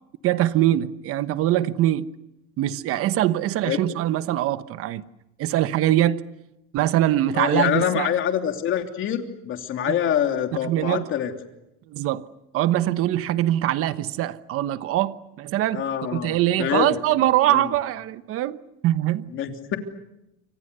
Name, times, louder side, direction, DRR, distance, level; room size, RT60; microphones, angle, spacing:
voice 1, 0.2-2.1 2.6-5.0 5.4-6.2 6.7-8.1 9.9-10.0 10.6-11.1 11.9-12.3 12.5-15.9 16.1-18.6 18.8-19.3, right 13 dB, 45° right, 1.2 m, -23 dB
voice 2, 7.3-11.3 15.7-17.0 17.5-17.7 19.3-19.8, left 9 dB, 40° left, 3.1 m, -25 dB
28.5 x 26.0 x 6.8 m
cardioid pair, 150°, 31 cm